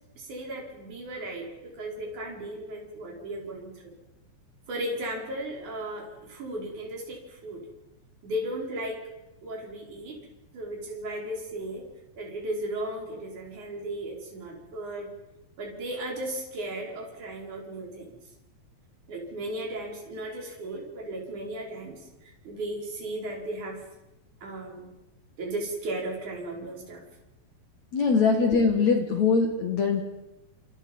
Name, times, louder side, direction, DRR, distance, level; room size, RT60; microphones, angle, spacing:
voice 1, 0.2-3.9 4.7-7.7 8.2-9.0 9.4-10.3 10.5-11.8 12.2-15.1 15.6-18.2 19.1-23.8 24.4-24.9 25.4-27.0 28.3-28.5, right 1 dB, 45° right, -1 dB, 6.3 m, -36 dB
voice 2, 27.9-30.0, left 5 dB, 50° left, 4 dB, 2.5 m, -22 dB
29.5 x 28.0 x 5.6 m, 0.95 s
omnidirectional pair, 5.1 m